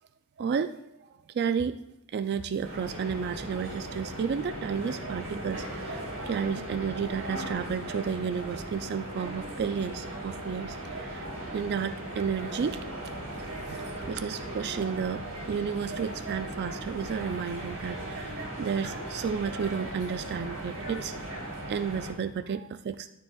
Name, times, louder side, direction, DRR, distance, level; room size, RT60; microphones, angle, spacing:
voice 1, 0.4-0.7 1.0-1.8 2.1-12.8 13.7-15.2 15.5-21.4 21.7-23.1, right 6 dB, 50° right, 11 dB, 0.3 m, -32 dB
sound 1, 2.6-22.1, right 1 dB, 85° right, 3.3 m, -38 dB
13.0 x 6.6 x 2.3 m, 0.81 s
head